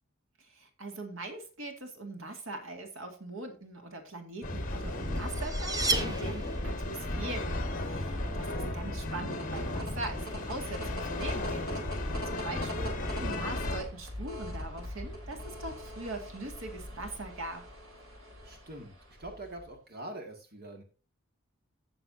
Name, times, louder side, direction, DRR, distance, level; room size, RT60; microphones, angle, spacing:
voice 1, 0.5-11.7 12.0-12.9 13.2-17.6, right 2 dB, 70° right, 5 dB, 2.2 m, -41 dB
sound 1, 4.4-13.8, left 1 dB, 40° left, 1.6 m, -34 dB
sound 2, 4.8-6.9, right 3 dB, 20° right, 1.0 m, -33 dB
voice 2, 8.0-8.8 12.3-12.6 18.4-20.8, right 1 dB, 45° right, 3 dB, 2.0 m, -45 dB
sound 3, 9.1-19.7, left 1 dB, 85° right, 3.8 m, -43 dB
16.0 x 6.8 x 2.7 m, 0.34 s
head